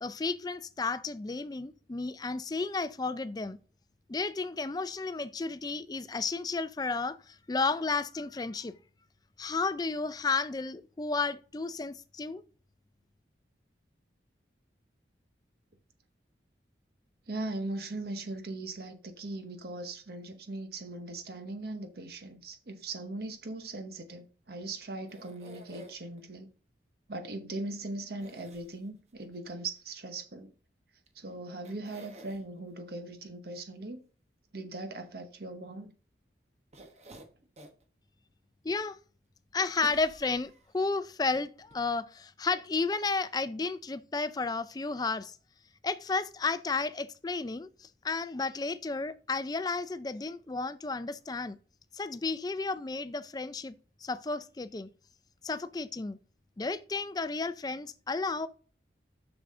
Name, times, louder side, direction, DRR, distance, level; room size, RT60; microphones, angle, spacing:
voice 1, 0.0-3.6 4.1-8.7 9.4-12.4 38.6-39.0 39.5-45.4 45.8-51.6 51.9-53.7 54.0-54.9 55.4-56.2 56.6-58.5, left 4 dB, 20° left, 0.4 m, -32 dB
voice 2, 17.3-26.5 27.1-30.5 31.1-34.0 34.5-35.9, right 2 dB, 60° right, 1.0 m, -39 dB
sound 1, 25.1-26.2 28.2-29.1 31.1-31.2 31.6-32.4 36.7-37.8 38.3-38.4 39.8-40.8 41.3-41.4 41.7-41.8, right 1 dB, 35° right, 1.1 m, -51 dB
6.7 x 6.2 x 3.7 m
head